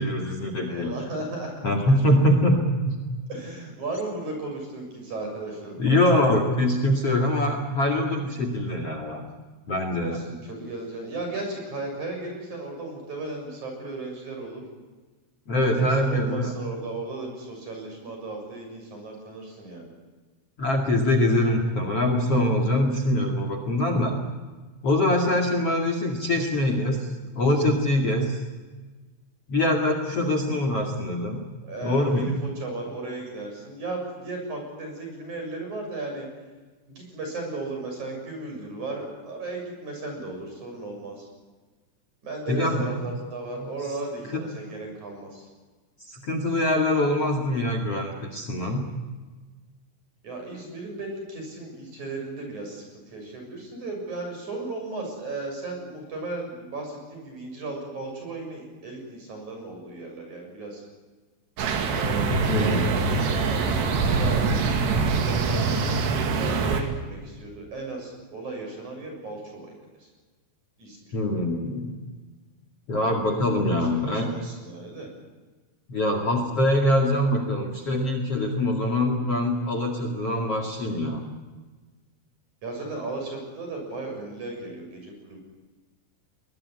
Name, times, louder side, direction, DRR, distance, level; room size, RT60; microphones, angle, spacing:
voice 1, 0.0-0.9 1.6-2.6 2.8-3.0 5.8-9.2 9.7-10.2 15.5-16.5 20.6-24.2 24.8-27.1 27.4-28.4 29.5-31.4 31.8-32.3 42.5-42.9 44.3-44.4 46.0-48.8 62.4-62.9 71.1-71.9 72.9-74.3 75.9-81.3, left 1 dB, 40° left, 5 dB, 2.5 m, -23 dB
voice 2, 0.7-1.5 3.3-6.0 10.0-14.6 15.8-19.9 31.6-36.3 36.9-41.3 42.2-45.5 50.2-60.8 61.9-64.5 65.3-69.7 70.0-70.1 70.8-71.0 73.9-75.1 82.6-85.4, right 2 dB, 40° right, 3 dB, 8.2 m, -35 dB
sound 1, 61.6-66.8, right 4 dB, 65° right, 4.4 m, -24 dB
23.0 x 21.0 x 9.8 m, 1.3 s
omnidirectional pair, 5.4 m